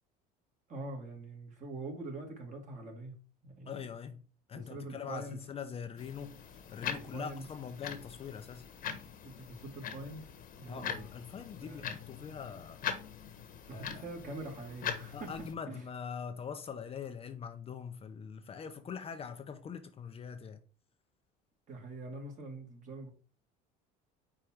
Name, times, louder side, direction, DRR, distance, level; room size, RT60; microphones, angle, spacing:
voice 1, 0.7-3.1 3.4-3.9 4.5-5.4 6.9-7.4 9.2-10.3 10.6-11.0 11.6-11.9 13.7-15.3 15.7-15.8 21.7-23.1, right 2 dB, 40° right, 2.4 m, -44 dB
voice 2, 3.7-6.4 6.7-8.7 10.7-12.8 13.7-14.0 15.1-20.6, left 7 dB, 30° left, 0.6 m, -43 dB
sound 1, 6.0-15.5, left 8 dB, 50° left, 1.2 m, -42 dB
5.1 x 4.5 x 4.5 m
cardioid pair, 115°, 19 cm